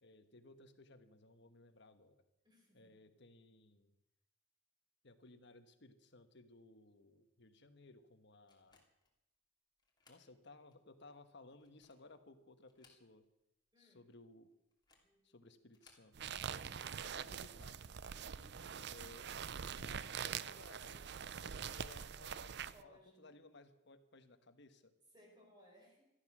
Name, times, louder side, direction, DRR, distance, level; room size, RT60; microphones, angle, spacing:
voice 1, 0.0-2.2 2.7-3.9 5.0-8.8 10.1-13.2 13.8-14.5 15.2-16.3 16.7-17.9 18.9-19.3 19.8-22.6 22.8-24.9, left 2 dB, 60° left, 10 dB, 1.3 m, -60 dB
voice 2, 2.4-3.0 13.7-14.0 15.0-15.7 18.3-19.0 22.7-23.3 25.1-26.1, equal, 20° right, 0 dB, 4.8 m, -65 dB
sound 1, 8.5-9.2 9.8-10.3 10.7-10.8 11.5-12.1 12.6-13.4 13.7-13.8 14.7-15.1 15.7-16.1, left 4 dB, 20° left, 2.8 m, -69 dB
sound 2, 16.1-22.8, right 7 dB, 55° right, 0.5 m, -44 dB
17.0 x 13.0 x 6.2 m, 0.90 s
head